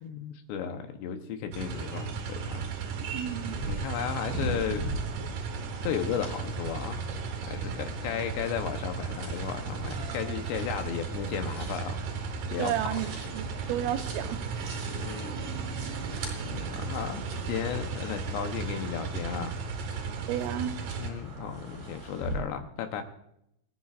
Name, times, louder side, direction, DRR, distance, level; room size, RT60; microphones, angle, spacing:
voice 1, 0.0-2.7 3.6-4.9 5.8-7.0 7.5-12.0 12.5-12.9 14.9-15.5 16.4-19.5 21.0-23.0, left 8 dB, 75° left, 2.8 m, -34 dB
sound 1, 1.5-21.1, right 5 dB, 70° right, 2.0 m, -36 dB
voice 2, 3.1-3.6 12.6-13.1 13.3-14.4 20.3-20.7, right 11 dB, 90° right, 3.3 m, -31 dB
sound 2, 3.5-22.4, right 2 dB, 50° right, 5.4 m, -41 dB
28.5 x 9.9 x 2.5 m
omnidirectional pair, 5.6 m